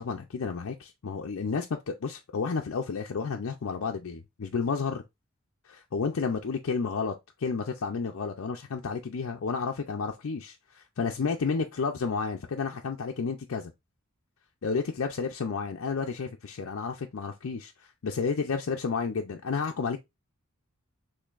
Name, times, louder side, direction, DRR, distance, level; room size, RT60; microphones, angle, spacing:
voice 1, 0.0-5.0 5.6-7.1 7.4-13.7 14.6-20.0, left 5 dB, 70° left, 0.5 m, -31 dB
6.4 x 3.1 x 2.4 m
head